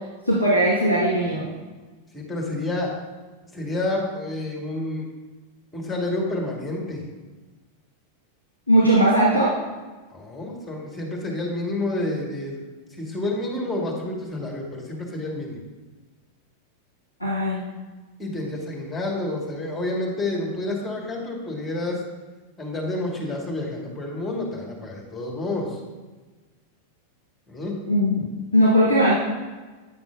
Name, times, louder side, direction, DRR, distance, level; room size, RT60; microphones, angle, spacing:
voice 1, 0.3-1.5 8.7-9.5 17.2-17.6 27.9-28.2 28.5-29.2, equal, 90° right, -7 dB, 1.8 m, -19 dB
voice 2, 2.1-2.9 3.5-5.1 5.7-7.0 10.1-12.6 13.0-15.6 18.2-22.0 22.6-25.8 27.5-27.8, left 2 dB, 10° left, -2 dB, 1.5 m, -29 dB
9.3 x 5.8 x 2.5 m, 1.3 s
figure-of-eight pair, 90°, 0 cm